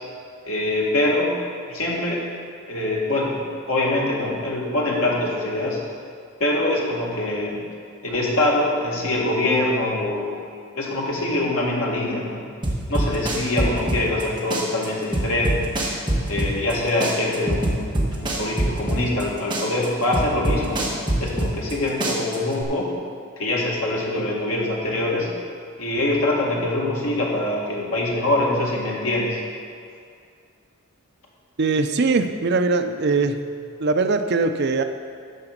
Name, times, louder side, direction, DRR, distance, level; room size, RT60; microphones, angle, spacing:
voice 1, 0.5-1.3 1.7-2.2 2.7-5.8 6.4-7.6 8.0-10.4 10.8-12.4 12.9-15.7 16.3-20.9 21.2-22.9 23.4-25.3 25.8-29.4, left 1 dB, 70° left, -3 dB, 2.1 m, -24 dB
sound 1, 12.6-14.2 14.5-16.7 17.0-19.2 19.5-21.7 22.0-22.6, right 1 dB, 20° right, 1.5 m, -23 dB
voice 2, 31.6-33.3 33.8-34.8, right 3 dB, 50° right, 8 dB, 0.5 m, -21 dB
13.0 x 4.9 x 6.6 m, 2.3 s
head